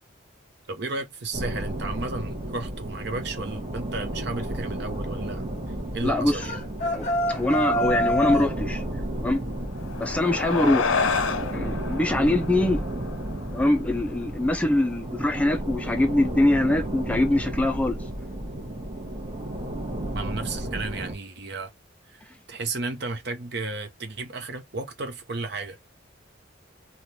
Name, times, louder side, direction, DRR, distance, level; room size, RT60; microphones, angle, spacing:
voice 1, 0.7-5.5 5.9-6.6 20.1-21.7 22.1-25.8, right 3 dB, 55° right, 0.7 m, -33 dB
sound 1, 1.3-21.1, right 1 dB, 25° right, 0.9 m, -33 dB
voice 2, 6.0-6.5 6.9-8.8 9.2-9.4 10.0-11.0 11.5-12.8 13.5-18.0, left 1 dB, 5° left, 0.4 m, -23 dB
sound 2, 6.4-8.6, equal, 35° left, 0.8 m, -26 dB
sound 3, 9.6-14.4, left 5 dB, 80° left, 0.5 m, -30 dB
3.3 x 2.2 x 2.6 m
head